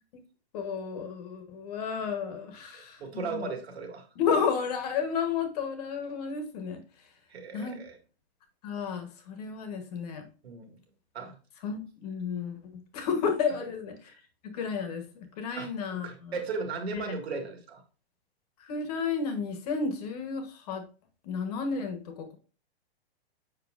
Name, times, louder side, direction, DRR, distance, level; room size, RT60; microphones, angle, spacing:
voice 1, 0.5-3.5 4.2-6.8 7.5-7.8 8.6-10.3 11.6-12.6 12.9-13.9 14.4-16.3 16.9-17.0 18.6-20.8 21.2-22.4, left 6 dB, 35° left, 7 dB, 1.3 m, -32 dB
voice 2, 3.0-4.1 7.3-8.0 10.4-10.8 11.1-11.3 14.1-14.2 15.6-17.8, right 4 dB, 75° right, 4 dB, 2.2 m, -36 dB
7.3 x 5.8 x 2.5 m, 0.36 s
hypercardioid pair, 165°, 32 cm